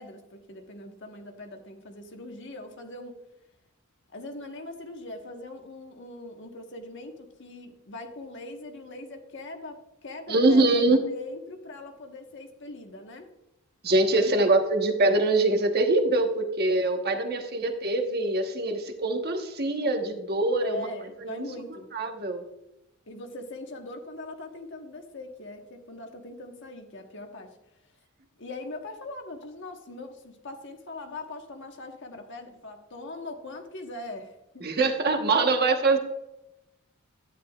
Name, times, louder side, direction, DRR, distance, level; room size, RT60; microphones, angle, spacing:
voice 1, 0.0-3.2 4.1-10.8 11.1-13.3 14.2-14.4 20.6-21.9 23.1-27.5 28.4-34.7, left 2 dB, 60° left, 4 dB, 1.3 m, -41 dB
voice 2, 10.3-11.0 13.8-20.9 21.2-21.4 21.9-22.4 34.6-36.0, right 2 dB, 50° right, 4 dB, 1.2 m, -23 dB
11.0 x 9.7 x 2.4 m, 0.92 s
head